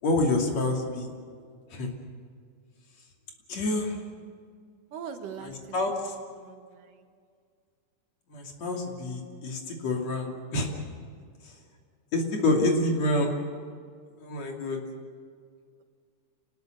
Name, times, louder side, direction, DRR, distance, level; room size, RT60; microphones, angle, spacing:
voice 1, 0.0-1.1 1.7-1.9 3.5-4.0 5.4-6.1 8.3-10.7 11.4-11.5 12.1-13.3 14.2-14.8, left 2 dB, 55° left, 1 dB, 3.9 m, -27 dB
voice 2, 4.9-5.9 6.4-7.0, right 7 dB, 80° right, 5 dB, 3.2 m, -42 dB
28.0 x 19.5 x 6.6 m, 2.1 s
omnidirectional pair, 3.7 m